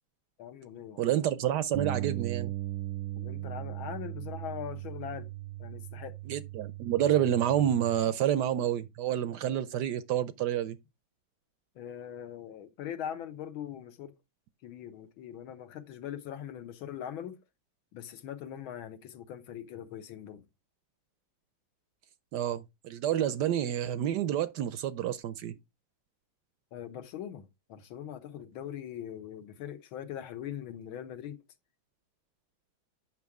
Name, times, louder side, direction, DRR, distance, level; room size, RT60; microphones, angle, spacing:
voice 1, 0.4-1.1 3.2-5.3 5.6-6.2 11.7-14.1 14.6-17.4 17.9-20.4 26.7-31.4, left 9 dB, 75° left, 1.7 m, -41 dB
voice 2, 1.0-2.5 6.3-10.8 22.3-25.5, right 11 dB, 75° right, 1.0 m, -29 dB
Bass guitar, 1.7-8.0, right 15 dB, 90° right, 1.5 m, -38 dB
8.5 x 6.0 x 3.5 m
omnidirectional pair, 2.3 m